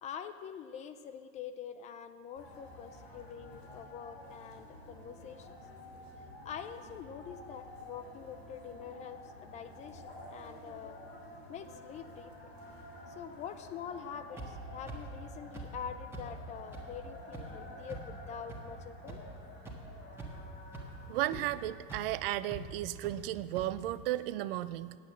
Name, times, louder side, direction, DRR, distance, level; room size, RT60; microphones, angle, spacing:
voice 1, 0.0-5.6 6.4-11.0 11.5-12.3 13.2-19.2 21.3-21.5, left 8 dB, 25° left, 10 dB, 0.4 m, -45 dB
sound 1, 2.3-21.8, left 1 dB, 90° left, 2.8 m, -50 dB
sound 2, 14.4-14.5 14.9-15.0 15.5-15.6 16.1-16.2 16.7-16.8 17.3-17.4 17.9-18.0 18.5-18.6 19.1-19.2 19.6-19.7 20.1-20.4 20.7-20.8 21.3-21.4 21.9-22.0 22.5-22.6 23.0-23.1 23.5-23.6, right 4 dB, 10° right, 1.4 m, -43 dB
voice 2, 21.1-25.0, right 14 dB, 65° right, 15 dB, 0.5 m, -34 dB
8.6 x 8.1 x 7.3 m, 2.2 s
supercardioid pair, 130°, 31 cm